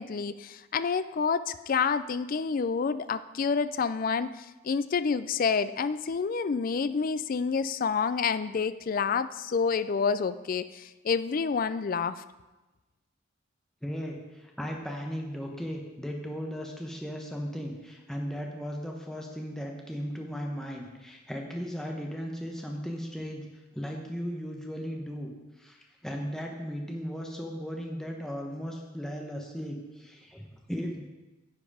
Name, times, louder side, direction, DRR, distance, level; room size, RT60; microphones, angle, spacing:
voice 1, 0.0-12.2, left 5 dB, 40° left, 14 dB, 0.3 m, -28 dB
voice 2, 13.8-23.5 23.7-25.3 25.6-31.0, equal, ahead, 0 dB, 1.0 m, -36 dB
10.5 x 7.9 x 4.9 m, 1.1 s
head